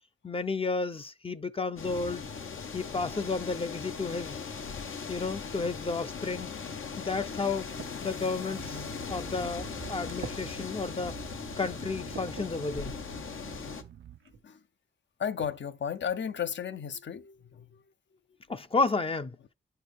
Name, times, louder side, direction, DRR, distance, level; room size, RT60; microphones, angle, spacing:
voice 1, 0.2-2.3 2.7-4.4 5.1-6.5 7.0-7.7 8.0-11.2 11.6-12.9 18.5-19.4, left 3 dB, 25° left, 0.5 m, -32 dB
sound 1, 1.8-13.8, left 5 dB, 85° left, 1.0 m, -39 dB
sound 2, 7.1-8.0 8.7-8.8 9.4-9.8 10.1-10.4 11.1-11.2 11.8-12.5 13.6-13.7 14.2-14.4 15.4-15.6 15.9-16.0 16.3-16.7, right 6 dB, 85° right, 1.3 m, -46 dB
sound 3, 8.6-14.2, right 10 dB, 60° right, 0.4 m, -48 dB
voice 2, 15.2-17.8, left 8 dB, 65° left, 0.7 m, -34 dB
9.1 x 4.5 x 3.4 m
wide cardioid pair, 85°, 20 cm